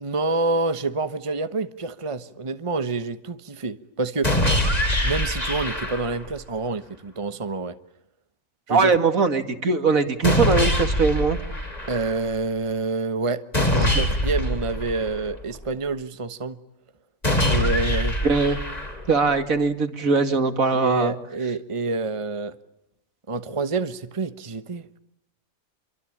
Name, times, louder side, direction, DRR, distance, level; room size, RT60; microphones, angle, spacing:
voice 1, 0.0-4.3 5.0-7.7 8.7-8.9 11.9-16.6 17.5-18.2 20.7-22.5 23.3-25.0, right 3 dB, 25° right, 1.2 m, -27 dB
sound 1, 4.2-6.3 10.2-12.3 13.5-15.6 17.2-19.3, left 1 dB, 25° left, 4.1 m, -24 dB
voice 2, 8.7-11.4 18.2-18.6 19.1-21.1, right 4 dB, 70° right, 2.6 m, -21 dB
28.5 x 24.0 x 8.7 m
omnidirectional pair, 1.5 m